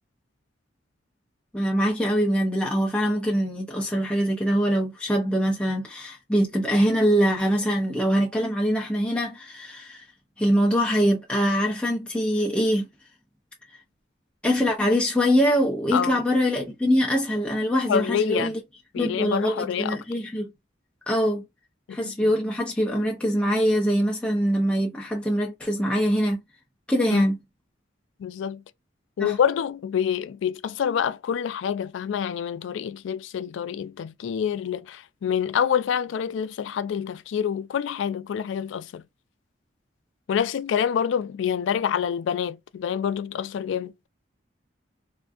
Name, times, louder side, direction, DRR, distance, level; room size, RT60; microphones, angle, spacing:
voice 1, 1.5-10.0 10.4-12.9 14.4-18.6 19.0-20.5 21.1-21.4 21.9-26.4 26.9-27.4 29.2-29.4, equal, 5° left, 0.4 m, -23 dB
voice 2, 15.9-16.2 17.9-18.5 18.9-20.0 21.9-22.3 27.1-27.3 28.2-28.6 29.2-39.0 40.3-43.9, left 8 dB, 75° left, 0.3 m, -27 dB
3.6 x 2.5 x 2.3 m
head